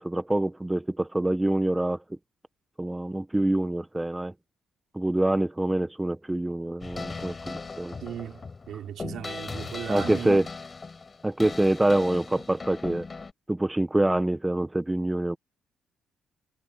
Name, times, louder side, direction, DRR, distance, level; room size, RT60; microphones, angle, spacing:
voice 1, 0.0-2.0 2.8-4.3 4.9-8.0 9.9-10.4 11.2-13.0 13.5-15.4, right 1 dB, 10° right, 1.1 m, -25 dB
sound 1, 6.8-13.3, left 4 dB, 30° left, 6.6 m, -38 dB
voice 2, 8.0-10.5, right 10 dB, 70° right, 3.9 m, -37 dB
cardioid pair, 90°, 0 cm